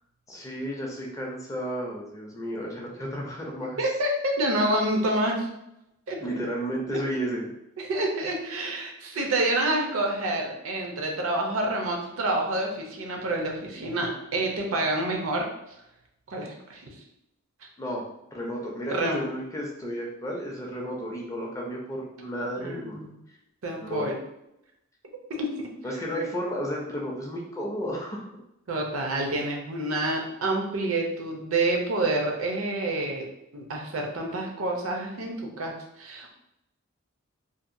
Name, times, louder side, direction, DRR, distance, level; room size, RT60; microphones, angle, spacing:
voice 1, 0.3-3.8 6.2-7.5 17.8-18.0 18.3-23.0 23.8-24.1 25.8-28.3, equal, 15° left, -2 dB, 0.4 m, -32 dB
voice 2, 3.8-5.5 6.1-6.3 6.9-7.0 7.8-15.5 16.3-16.8 17.6-17.7 18.9-19.3 22.6-23.2 23.6-24.2 25.3-25.5 28.7-33.3 33.5-36.3, right 1 dB, 75° right, 1 dB, 0.6 m, -28 dB
2.7 x 2.1 x 2.5 m, 0.84 s
head